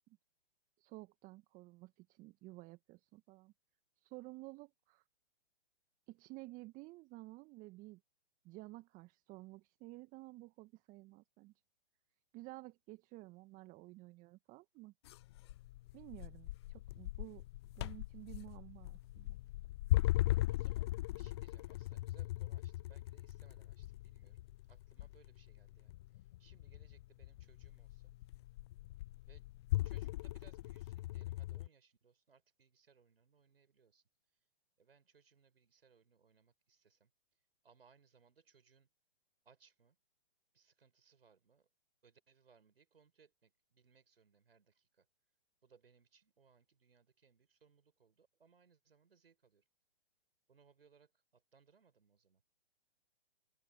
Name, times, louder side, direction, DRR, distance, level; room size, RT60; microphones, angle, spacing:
voice 1, 0.8-3.5 4.0-5.0 6.1-8.0 8.4-11.5 12.3-14.9 15.9-17.4 17.8-19.4, right 21 dB, 25° right, 1.6 m, -53 dB
sound 1, 15.1-31.7, left 16 dB, 30° left, 0.4 m, -39 dB
voice 2, 20.3-24.4 24.7-28.1 29.2-29.5 29.8-34.0 34.8-37.1 37.6-38.9 39.4-40.0 40.5-41.7 42.0-45.1 45.6-49.6 50.5-52.4, right 6 dB, 75° right, 6.5 m, -69 dB
open air
figure-of-eight pair, 125°, 30 cm